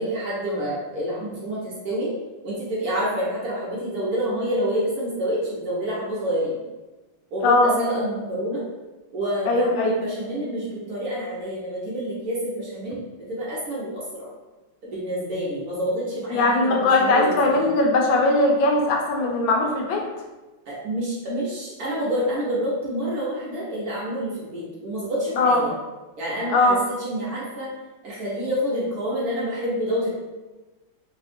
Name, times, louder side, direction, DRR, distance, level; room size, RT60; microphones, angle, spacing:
voice 1, 0.0-2.1 2.4-6.6 7.3-8.6 9.1-14.3 14.9-17.7 20.7-25.7 26.2-26.7 27.0-27.7 28.0-30.1, equal, 55° right, -6 dB, 1.2 m, -28 dB
voice 2, 7.4-7.8 9.5-9.9 16.3-20.0 25.4-25.6 26.5-26.8, left 2 dB, 75° left, 1 dB, 1.3 m, -20 dB
3.5 x 2.4 x 4.1 m, 1.1 s
omnidirectional pair, 2.2 m